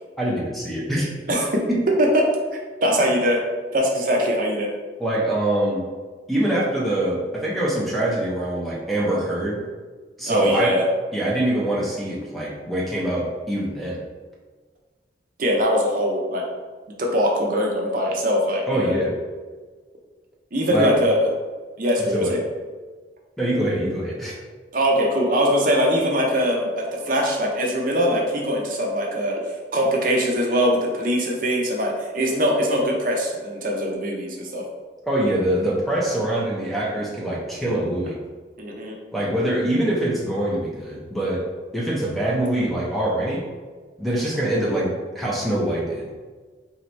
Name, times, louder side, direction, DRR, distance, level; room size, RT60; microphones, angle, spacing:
voice 1, 0.2-1.1 1.7-1.8 5.0-5.8 6.3-9.6 10.2-10.8 11.1-14.0 18.7-19.2 20.7-20.9 22.0-22.4 23.4-24.4 35.1-38.2 39.1-41.5 41.7-43.5 44.0-46.1, right 1 dB, ahead, -4 dB, 0.6 m, -24 dB
voice 2, 1.3-1.6 2.0-2.1 2.8-3.4 3.7-4.7 10.3-10.8 15.4-16.4 17.0-19.0 20.5-21.3 21.8-22.4 24.7-34.6 38.6-38.9, equal, 50° right, -1 dB, 0.6 m, -22 dB
3.0 x 2.8 x 4.4 m, 1.4 s
head